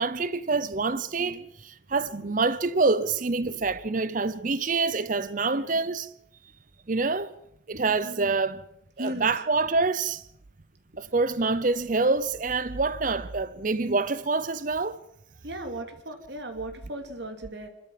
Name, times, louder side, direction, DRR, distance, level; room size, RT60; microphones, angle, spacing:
voice 1, 0.0-6.1 6.9-7.3 7.7-8.6 9.0-10.2 11.0-15.0, right 3 dB, 40° right, 0.7 m, -26 dB
voice 2, 1.9-2.3 2.7-2.8 3.4-3.6 5.5-5.9 8.0-8.3 9.0-9.3 15.4-17.7, right 1 dB, 60° right, 3.1 m, -38 dB
27.5 x 13.0 x 7.5 m
head